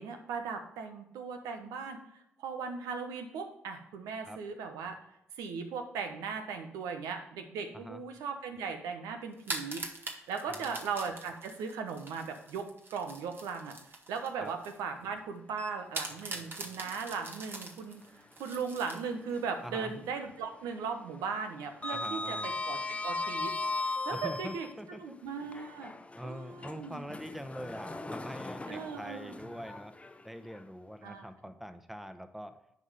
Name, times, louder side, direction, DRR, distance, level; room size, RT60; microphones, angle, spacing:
voice 1, 0.0-4.9 5.4-13.7 14.1-18.0 18.4-23.5 24.0-26.0 26.2-27.0 28.7-29.4 31.0-31.3, right 5 dB, 75° right, 6 dB, 1.1 m, -38 dB
sound 1, 9.3-14.8 15.2-15.3 15.9-19.4, right 2 dB, 35° right, 1.7 m, -43 dB
Sliding door, 15.5-16.5 16.9-17.0 18.7-19.7 20.0-20.4 20.6-24.7 25.4-30.6, left 2 dB, 20° left, 0.8 m, -38 dB
voice 2, 21.9-22.5 24.1-25.1 26.1-29.9 30.2-32.5, equal, 5° right, 9 dB, 1.1 m, -43 dB
9.7 x 5.3 x 5.1 m, 0.82 s
hypercardioid pair, 40°, 6 cm